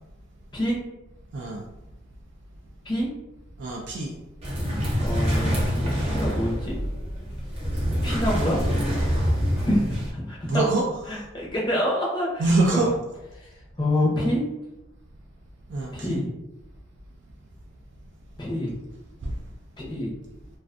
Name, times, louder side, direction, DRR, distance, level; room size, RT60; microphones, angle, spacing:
voice 1, 1.3-1.6 3.6-4.1 10.4-11.2 12.4-12.9 15.7-16.2 19.2-19.3, right 2 dB, 65° right, -1 dB, 0.3 m, -25 dB
sound 1, 4.4-10.1, equal, 30° right, 0.7 m, -26 dB
voice 2, 5.0-6.8 8.0-8.6 9.7-10.6 11.1-12.4 12.7-12.9 13.8-14.4 15.9-16.2 18.4-18.7 19.8-20.1, left 1 dB, 20° left, -3 dB, 0.6 m, -26 dB
2.4 x 2.3 x 2.4 m, 0.95 s
head